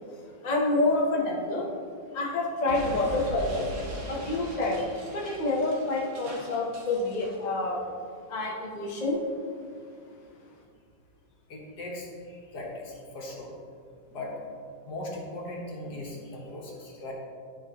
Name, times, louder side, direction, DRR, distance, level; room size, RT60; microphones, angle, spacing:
voice 1, 0.4-1.7 2.1-3.7 4.1-4.8 5.1-7.8 8.3-9.2, left 2 dB, 35° left, -2 dB, 0.8 m, -27 dB
Explosion, 2.7-7.4, right 2 dB, 60° right, 1.8 m, -40 dB
voice 2, 11.5-13.5 14.1-14.5 14.9-17.1, left 1 dB, 60° left, -2 dB, 1.8 m, -38 dB
12.5 x 5.4 x 3.0 m, 2.3 s
omnidirectional pair, 2.1 m